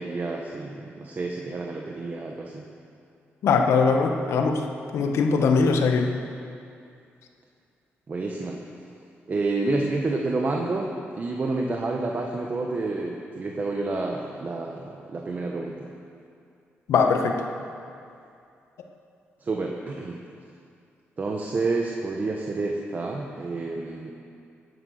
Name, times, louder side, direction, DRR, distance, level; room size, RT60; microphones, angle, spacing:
voice 1, 0.0-2.7 8.1-8.6 9.3-15.9 19.4-20.2 21.2-24.1, right 3 dB, 40° right, 0 dB, 1.3 m, -29 dB
voice 2, 3.4-4.6 4.9-6.1 16.9-17.4, left 5 dB, 80° left, 3 dB, 1.4 m, -21 dB
15.5 x 9.6 x 6.6 m, 2.5 s
cardioid pair, 90°, 5 cm